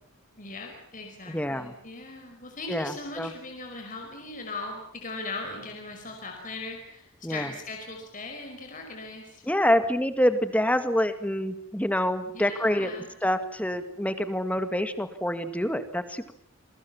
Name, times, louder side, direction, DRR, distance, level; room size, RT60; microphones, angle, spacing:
voice 1, 0.4-9.4 12.3-13.1, left 3 dB, 40° left, 2 dB, 5.2 m, -39 dB
voice 2, 1.3-1.7 2.7-3.3 7.2-7.5 9.5-12.9 13.2-16.3, equal, 5° left, 10 dB, 2.0 m, -26 dB
28.0 x 23.5 x 7.3 m, 0.63 s
head